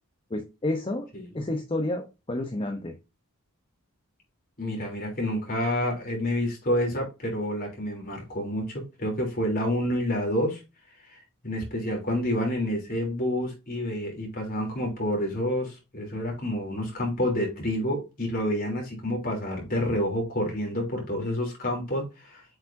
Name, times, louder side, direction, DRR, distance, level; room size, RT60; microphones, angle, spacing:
voice 1, 0.3-1.1 1.3-3.0, left 1 dB, 25° left, 5 dB, 0.8 m, -30 dB
voice 2, 4.6-10.6 11.1-22.4, equal, 40° left, -1 dB, 3.3 m, -28 dB
7.7 x 4.9 x 2.7 m, 0.27 s
head